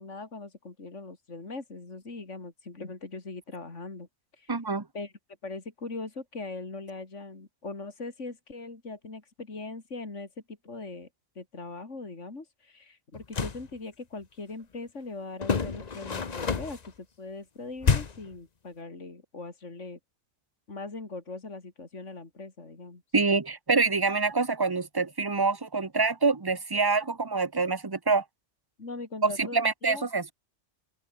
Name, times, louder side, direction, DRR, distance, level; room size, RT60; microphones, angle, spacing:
voice 1, 0.0-4.1 4.3-4.5 4.9-5.1 5.4-11.1 11.4-20.0 20.7-23.0 28.8-30.1, left 3 dB, 65° left, 3.7 m, -40 dB
voice 2, 4.5-4.8 23.1-28.2 29.2-30.3, right 4 dB, 20° right, 1.2 m, -26 dB
sound 1, 13.1-13.7 15.4-16.9 17.8-18.3, left 5 dB, 35° left, 1.0 m, -28 dB
omnidirectional pair, 1.4 m